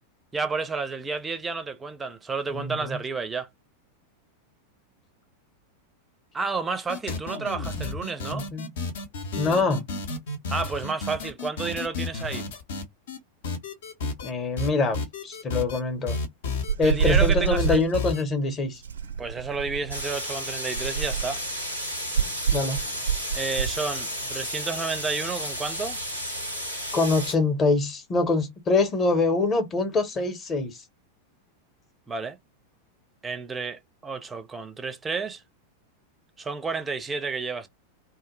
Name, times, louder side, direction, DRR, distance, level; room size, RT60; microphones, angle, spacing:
voice 1, 0.3-3.5 6.3-8.5 10.5-12.5 16.8-17.8 19.2-21.4 23.3-26.0 32.1-32.4 33.2-35.4 36.4-37.7, right 4 dB, 15° right, 0.5 m, -31 dB
voice 2, 2.5-3.0 8.3-8.7 9.4-9.8 14.2-15.0 15.2-16.2 16.8-18.8 22.5-22.8 26.9-30.8, left 3 dB, 25° left, 0.8 m, -24 dB
sound 1, 6.9-13.2 13.4-14.3 14.6-15.8 16.1-17.3 17.6-18.2, left 4 dB, 55° left, 0.6 m, -32 dB
sound 2, 16.7-17.9 18.8-20.1 20.7-21.4 22.1-23.8, right 8 dB, 70° right, 0.4 m, -26 dB
sound 3, 19.9-27.3, equal, 90° left, 0.9 m, -33 dB
2.2 x 2.1 x 3.0 m
figure-of-eight pair, 90°, 0 cm